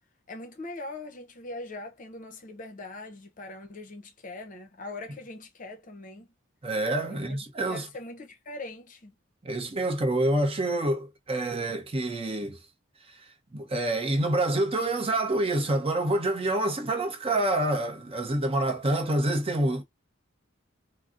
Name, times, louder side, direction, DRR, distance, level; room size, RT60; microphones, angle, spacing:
voice 1, 0.3-6.3 7.1-7.4 7.7-9.1, left 2 dB, 40° left, 0.6 m, -41 dB
voice 2, 6.6-7.9 9.4-12.6 13.1-13.2 13.5-19.8, right 1 dB, 30° right, 0.7 m, -27 dB
3.7 x 2.0 x 2.5 m
head